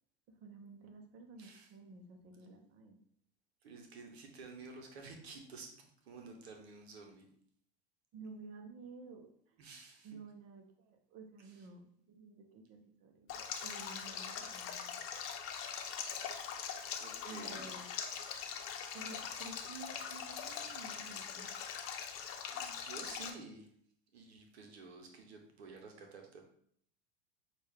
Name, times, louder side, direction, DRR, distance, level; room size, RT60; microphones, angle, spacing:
voice 1, 0.3-3.0 8.1-9.6 10.0-15.0 17.3-17.9 18.9-21.5, right 3 dB, 45° right, 3 dB, 0.9 m, -52 dB
voice 2, 1.4-1.7 3.6-7.3 9.6-10.2 11.4-11.7 17.0-17.7 22.5-23.7 24.1-26.4, right 4 dB, 85° right, 3 dB, 0.9 m, -52 dB
Stream, 13.3-23.3, left 7 dB, 45° left, 0.8 m, -42 dB
6.0 x 2.5 x 3.5 m, 0.63 s
hypercardioid pair, 100°, 31 cm